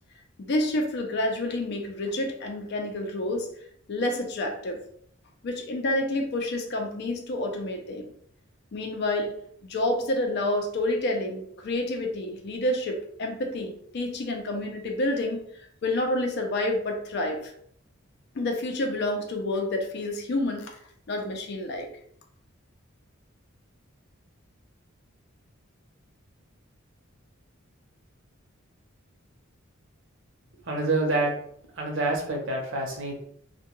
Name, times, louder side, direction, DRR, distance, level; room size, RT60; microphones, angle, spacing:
voice 1, 0.4-3.5 3.9-4.8 5.4-8.1 8.7-9.4 9.6-15.4 15.8-17.5 18.3-20.7 21.1-21.9, left 1 dB, 55° left, 3 dB, 0.4 m, -28 dB
voice 2, 30.7-31.3 31.8-33.1, right 2 dB, 60° right, 0 dB, 0.7 m, -27 dB
2.2 x 2.2 x 3.0 m, 0.66 s
head